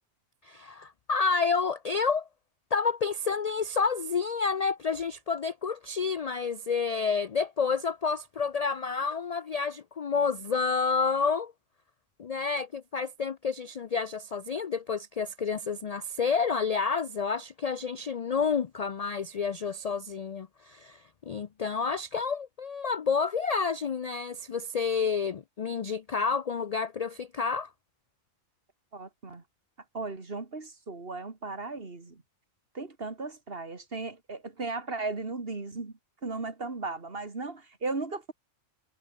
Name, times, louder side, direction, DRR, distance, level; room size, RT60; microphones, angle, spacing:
voice 1, 0.4-2.3 2.7-11.5 12.2-27.7, left 5 dB, 50° left, 0.4 m, -29 dB
voice 2, 28.9-29.4 29.9-32.2 32.7-35.9 36.2-38.3, right 3 dB, 45° right, 2.6 m, -36 dB
omnidirectional pair, 1.3 m